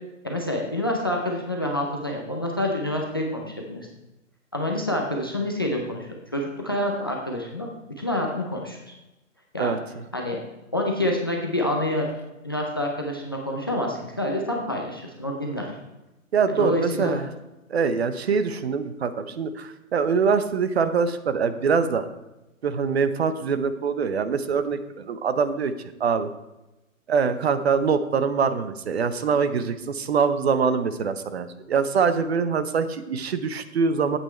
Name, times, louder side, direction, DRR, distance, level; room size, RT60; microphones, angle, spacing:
voice 1, 0.2-3.9 4.5-7.7 8.0-8.8 9.5-9.7 10.1-10.4 10.7-12.1 12.4-15.7 16.6-17.1, left 1 dB, 20° left, 0 dB, 0.4 m, -27 dB
voice 2, 16.3-17.3 17.7-22.1 22.6-25.7 26.0-26.3 27.1-34.2, right 5 dB, 50° right, 11 dB, 0.8 m, -24 dB
8.9 x 8.2 x 4.3 m, 0.99 s
hypercardioid pair, 155°, 41 cm